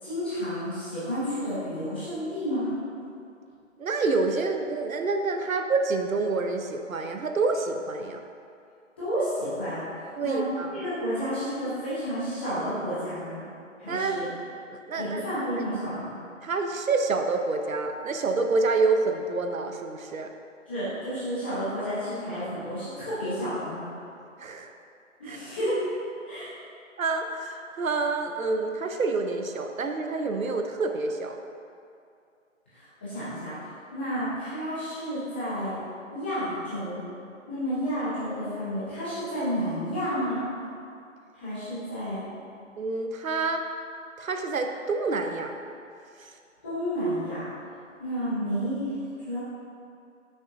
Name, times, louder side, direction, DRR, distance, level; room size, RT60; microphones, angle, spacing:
voice 1, 0.0-2.8 9.0-9.8 10.2-10.4 10.7-13.4 13.8-14.3 14.9-16.1 20.7-23.9 25.2-25.8 26.3-26.5 32.7-33.5 33.9-35.8 36.1-37.0 37.5-40.5 41.3-42.2 46.6-47.4 48.0-48.9 49.2-49.4, equal, 10° left, -13 dB, 0.7 m, -31 dB
voice 2, 3.8-8.2 10.2-10.8 13.9-14.2 14.7-15.7 16.4-20.3 24.4-24.7 25.2-25.4 27.0-31.4 42.8-43.6 44.2-45.5 46.2-46.3, right 3 dB, 85° right, 5 dB, 0.8 m, -28 dB
7.2 x 6.0 x 2.6 m, 2.5 s
figure-of-eight pair, 155°, 40 cm